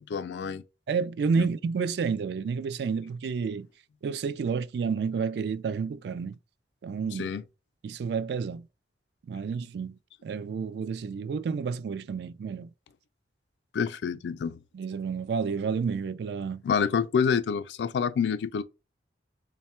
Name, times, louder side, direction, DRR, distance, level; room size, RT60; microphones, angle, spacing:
voice 1, 0.1-0.6 1.4-1.5 7.2-7.4 13.7-14.6 16.6-18.6, left 6 dB, 75° left, 0.3 m, -27 dB
voice 2, 0.9-3.7 4.0-6.3 6.8-7.3 7.8-8.7 9.3-10.0 10.2-12.7 14.7-16.6, right 5 dB, 65° right, 0.3 m, -30 dB
3.5 x 2.2 x 4.3 m
head